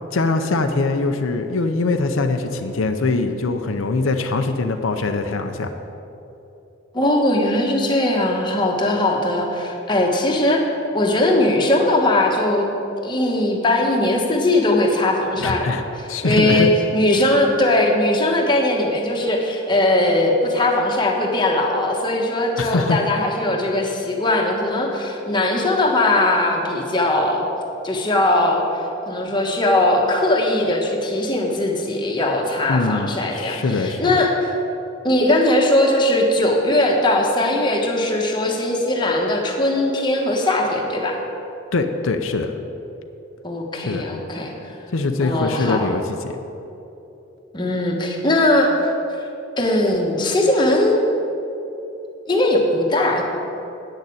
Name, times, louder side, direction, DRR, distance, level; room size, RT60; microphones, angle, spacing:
voice 1, 0.1-5.7 15.4-15.8 16.1-16.7 22.6-23.0 32.7-34.2 41.7-42.5 43.7-44.1 44.9-46.4, left 3 dB, 85° left, 6 dB, 0.6 m, -22 dB
voice 2, 6.9-10.6 10.9-12.7 13.0-27.4 27.8-34.5 35.0-41.2 43.4-44.5 45.2-45.9 47.5-48.7 49.2-49.3 49.6-51.0 52.3-53.2, left 1 dB, 25° left, 0 dB, 1.2 m, -19 dB
8.9 x 6.5 x 8.5 m, 3.0 s
head